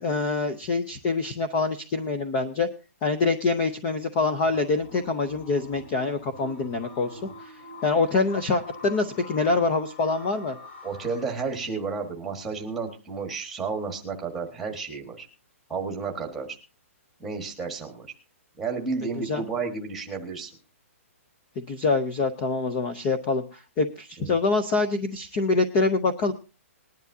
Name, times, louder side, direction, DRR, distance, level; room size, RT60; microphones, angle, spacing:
voice 1, 0.0-2.7 3.0-7.5 7.8-10.6 19.3-19.5 21.6-26.3, left 3 dB, 20° left, 6 dB, 0.6 m, -25 dB
sound 1, 4.4-11.2, left 2 dB, 50° left, 3.3 m, -45 dB
voice 2, 10.8-15.2 15.7-16.6 17.2-18.1 18.6-20.5 24.2-24.3, right 4 dB, ahead, 2 dB, 1.5 m, -32 dB
20.5 x 10.5 x 2.7 m, 0.29 s
hypercardioid pair, 180°, 8 cm